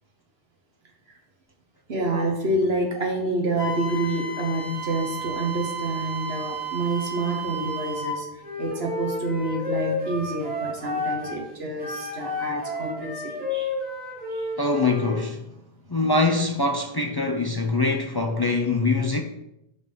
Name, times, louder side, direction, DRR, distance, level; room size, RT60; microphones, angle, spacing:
voice 1, 1.9-13.7 14.2-14.5, right 2 dB, 80° right, 1.6 m, -28 dB
Wind instrument woodwind instrument, 3.6-8.2, right 2 dB, 30° right, 2.5 m, -33 dB
Wind instrument woodwind instrument 2, 8.4-11.4 11.8-15.2, left 3 dB, 45° right, 2.8 m, -31 dB
voice 2, 14.6-15.4 15.9-19.2, left 3 dB, 30° left, 0.5 m, -23 dB
5.3 x 4.8 x 5.4 m
omnidirectional pair, 1.0 m